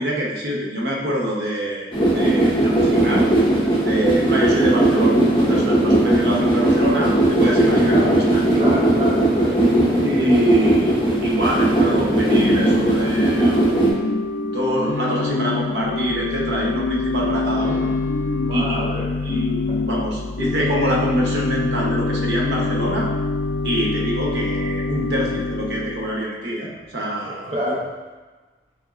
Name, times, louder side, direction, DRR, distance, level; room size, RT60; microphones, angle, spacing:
voice 1, 0.0-1.9 2.1-3.3 3.8-8.5 10.0-14.1 14.5-17.9 18.5-18.8 19.2-23.1 23.6-27.7, equal, 75° right, -2 dB, 0.9 m, -25 dB
sound 1, 1.9-13.9, right 1 dB, 25° left, 0.8 m, -18 dB
voice 2, 7.8-8.3 8.5-9.6 18.4-19.4 19.7-19.8 27.2-27.9, equal, 35° right, -4 dB, 0.5 m, -28 dB
Organ / Church bell, 12.0-26.2, left 3 dB, 80° left, 0.3 m, -25 dB
3.6 x 3.1 x 3.6 m, 1.3 s
head